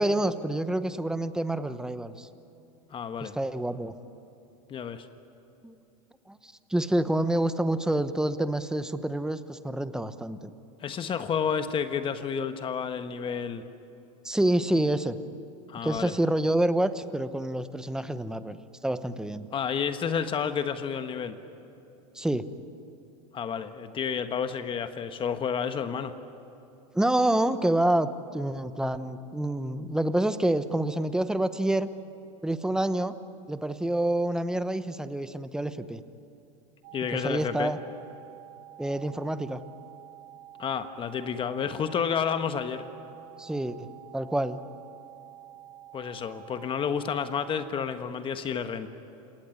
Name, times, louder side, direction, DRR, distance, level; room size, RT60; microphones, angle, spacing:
voice 1, 0.0-2.3 3.2-3.9 5.6-5.7 6.3-10.5 14.2-15.2 15.8-19.5 22.1-22.4 26.9-31.9 32.4-33.1 33.5-36.0 37.1-37.8 38.8-39.6 43.4-43.9 44.1-44.6, right 1 dB, 5° right, 12 dB, 1.0 m, -27 dB
voice 2, 2.9-3.3 4.7-5.1 10.8-13.6 15.7-16.1 19.5-21.4 23.3-26.1 36.9-37.7 40.6-42.8 45.9-48.9, left 7 dB, 30° left, 9 dB, 1.4 m, -30 dB
sound 1, 36.8-47.7, right 13 dB, 65° right, 2.6 m, -49 dB
29.0 x 18.5 x 9.8 m, 2.9 s
supercardioid pair, 110°, 18 cm